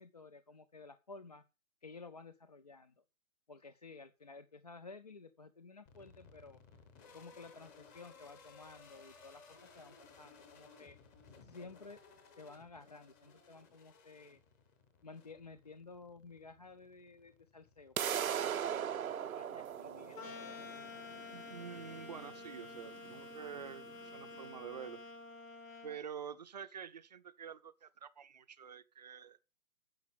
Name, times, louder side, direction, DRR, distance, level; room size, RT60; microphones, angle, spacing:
voice 1, 0.0-1.4 1.8-3.0 3.5-6.6 7.0-11.0 11.4-12.0 12.4-14.4 15.0-17.9 18.4-20.6, left 4 dB, 30° left, 0.5 m, -54 dB
sound 1, 5.9-25.1, left 4 dB, 10° left, 1.0 m, -62 dB
sound 2, 18.0-23.9, right 9 dB, 80° right, 0.9 m, -39 dB
sound 3, 20.1-26.0, left 4 dB, 65° left, 4.6 m, -49 dB
voice 2, 21.3-25.0 25.8-29.4, right 8 dB, 30° right, 0.7 m, -48 dB
10.5 x 7.2 x 7.5 m
hypercardioid pair, 170°, 42 cm